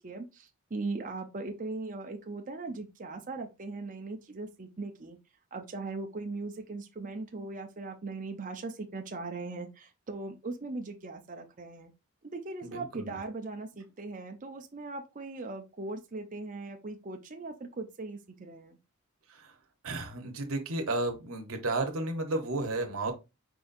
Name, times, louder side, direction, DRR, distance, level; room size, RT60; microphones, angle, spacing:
voice 1, 0.0-5.2 5.5-11.9 12.3-18.8, right 3 dB, 35° right, 0.6 m, -39 dB
voice 2, 12.6-13.1 19.3-19.5 19.8-23.1, right 2 dB, 70° right, 1.0 m, -33 dB
4.7 x 4.0 x 2.6 m
head